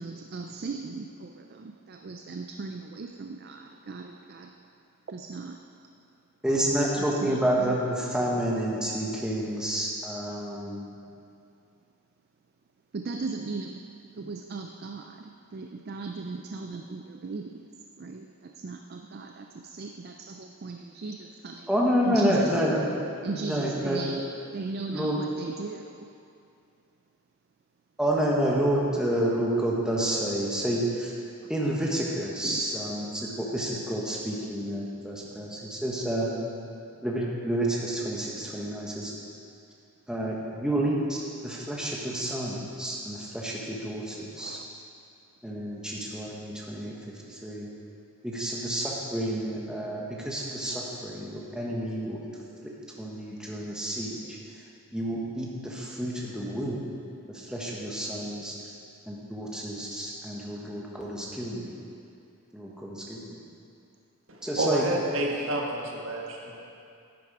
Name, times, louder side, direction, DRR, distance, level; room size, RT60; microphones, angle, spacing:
voice 1, 0.0-4.6 5.1-5.7 7.0-7.8 12.9-13.8 14.1-17.7 18.0-21.7 22.0-22.5 23.2-26.1 31.4-31.5 32.4-32.7 34.9-35.5 44.1-44.7, right 3 dB, 45° right, 5 dB, 0.4 m, -38 dB
voice 2, 6.4-10.8 21.7-23.0 23.4-24.0 24.9-25.2 28.0-31.1 31.5-36.3 37.0-39.1 40.1-41.2 41.4-44.6 45.4-46.9 47.2-47.7 48.2-52.4 52.6-54.4 54.9-56.9 57.3-58.7 59.1-61.8 62.5-63.4 64.4-64.9, right 1 dB, 5° right, -4 dB, 1.2 m, -29 dB
voice 3, 64.3-66.6, right 1 dB, 65° right, -1 dB, 1.5 m, -29 dB
11.0 x 9.4 x 4.8 m, 2.5 s
head